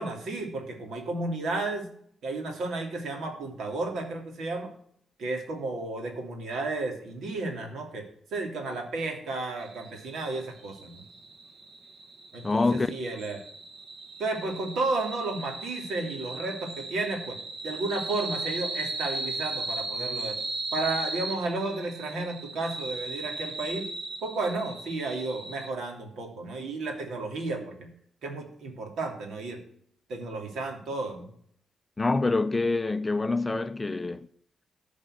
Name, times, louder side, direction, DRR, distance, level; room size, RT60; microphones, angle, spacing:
voice 1, 0.0-1.9 2.2-4.7 5.2-8.1 8.3-11.0 12.3-13.4 14.2-17.4 17.6-20.4 20.7-23.9 24.2-27.9 28.2-29.6 30.1-31.3, right 2 dB, 75° right, 3.0 m, -32 dB
sound 1, 9.6-25.7, right 3 dB, 45° right, 1.6 m, -37 dB
voice 2, 12.4-12.9 32.0-34.3, left 3 dB, 15° left, 0.5 m, -26 dB
14.5 x 5.3 x 6.4 m
cardioid pair, 140°, 0 cm